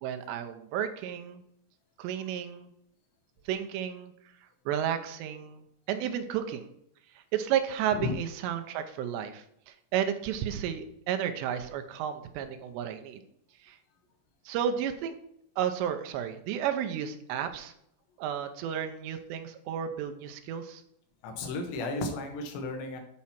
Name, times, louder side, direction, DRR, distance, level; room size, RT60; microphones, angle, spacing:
voice 1, 0.0-1.4 2.0-2.7 3.5-4.1 4.7-5.6 5.9-6.7 7.2-13.2 13.6-13.8 14.5-15.2 15.6-17.7 18.2-20.8, right 9 dB, 85° right, 7 dB, 2.9 m, -32 dB
voice 2, 21.2-23.0, left 2 dB, 85° left, 4 dB, 3.5 m, -33 dB
8.6 x 4.3 x 5.7 m, 0.74 s
omnidirectional pair, 5.0 m